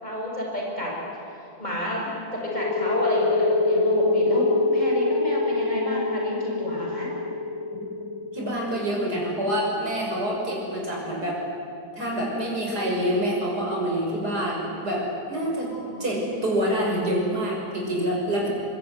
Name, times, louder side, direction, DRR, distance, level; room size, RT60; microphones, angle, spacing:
voice 1, 0.0-0.9 1.6-2.1 2.3-7.1 15.6-16.2, left 1 dB, 25° left, -2 dB, 7.0 m, -30 dB
sound 1, 2.4-9.9, left 3 dB, 60° right, 2.8 m, -24 dB
voice 2, 8.0-11.4 12.0-15.7 16.0-18.5, equal, 75° right, -1 dB, 6.7 m, -27 dB
23.5 x 23.5 x 9.4 m, 2.6 s
omnidirectional pair, 1.7 m